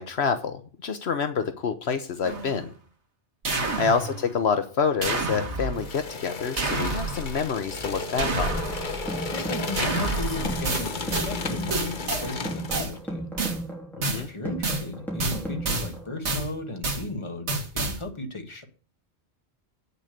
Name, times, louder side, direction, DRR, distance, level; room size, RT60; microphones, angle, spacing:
voice 1, 0.0-2.7 3.8-8.5 14.0-14.3, left 6 dB, 70° left, 9 dB, 1.2 m, -27 dB
sound 1, 2.2-2.7 3.4-4.4 5.0-6.0 6.6-7.5 8.2-9.1 9.8-11.4 11.7-12.3 12.7-12.9 13.4-13.6 14.0-14.3 14.6-14.9 15.2-15.9 16.3-16.5 16.8-17.1 17.5-18.0, right 3 dB, 80° right, 2.0 m, -29 dB
sound 2, 5.7-12.9, left 3 dB, 45° left, 1.2 m, -34 dB
sound 3, 8.4-16.2, right 1 dB, ahead, 3.8 m, -36 dB
voice 2, 9.3-13.3 14.1-18.6, left 2 dB, 25° left, 4 dB, 1.7 m, -35 dB
8.8 x 6.7 x 6.6 m, 0.40 s
omnidirectional pair, 1.1 m